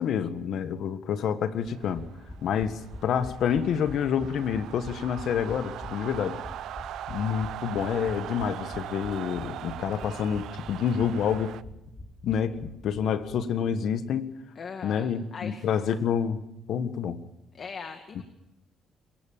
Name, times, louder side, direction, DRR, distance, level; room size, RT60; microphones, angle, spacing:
voice 1, 0.0-2.0 2.4-6.4 7.1-11.6 12.2-14.3 14.8-17.2, left 8 dB, 75° left, 10 dB, 1.5 m, -28 dB
sound 1, 1.6-13.4 13.6-13.7 14.0-14.1, left 2 dB, 25° left, 5.0 m, -44 dB
sound 2, 1.7-11.6, right 12 dB, 80° right, 0.7 m, -41 dB
voice 2, 14.6-15.6 17.5-18.2, left 5 dB, 50° left, 6 dB, 2.1 m, -40 dB
27.0 x 15.5 x 7.4 m, 0.89 s
cardioid pair, 90°, 0 cm